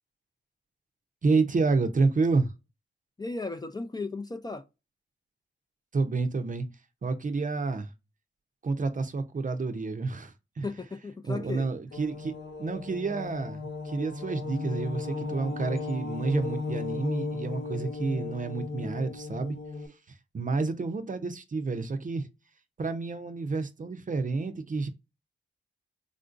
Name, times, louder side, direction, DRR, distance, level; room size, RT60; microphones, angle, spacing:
voice 1, 1.2-2.5 5.9-6.7 7.0-7.9 8.6-10.7 11.3-12.3 12.6-19.6 20.3-22.3 22.8-24.9, right 3 dB, 40° right, 0.6 m, -29 dB
voice 2, 3.2-4.6 10.6-11.7, left 3 dB, 20° left, 0.4 m, -35 dB
sound 1, 11.9-19.9, left 3 dB, 70° left, 1.1 m, -36 dB
3.6 x 2.5 x 2.4 m
cardioid pair, 45°, 21 cm